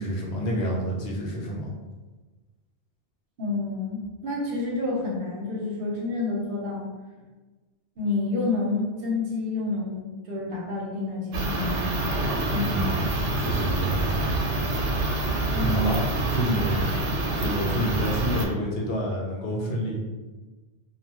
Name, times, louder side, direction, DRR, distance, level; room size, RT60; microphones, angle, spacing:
voice 1, 0.0-1.7 12.7-13.1 13.4-14.1 15.6-16.0 16.3-16.8 17.4-20.0, equal, 65° left, -2 dB, 0.8 m, -28 dB
voice 2, 3.4-6.9 8.0-12.2 12.5-12.9 15.5-15.9, left 3 dB, 60° right, -3 dB, 0.8 m, -29 dB
sound 1, 11.3-18.5, right 2 dB, 85° right, 0.9 m, -26 dB
2.3 x 2.2 x 2.8 m, 1.3 s
omnidirectional pair, 1.2 m